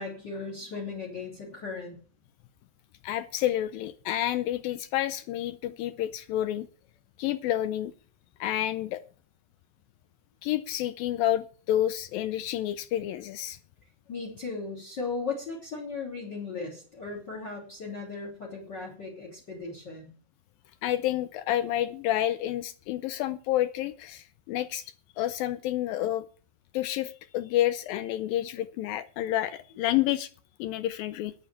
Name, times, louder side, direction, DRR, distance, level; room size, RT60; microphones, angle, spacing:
voice 1, 0.0-2.0 14.1-20.1, left 4 dB, 30° left, 2 dB, 3.3 m, -37 dB
voice 2, 3.0-6.7 7.2-7.9 8.4-9.0 10.4-13.6 20.8-24.8 25.2-26.3 26.7-30.3 30.6-31.3, left 13 dB, 80° left, 13 dB, 2.2 m, -29 dB
9.9 x 9.3 x 7.1 m, 0.41 s
omnidirectional pair, 4.6 m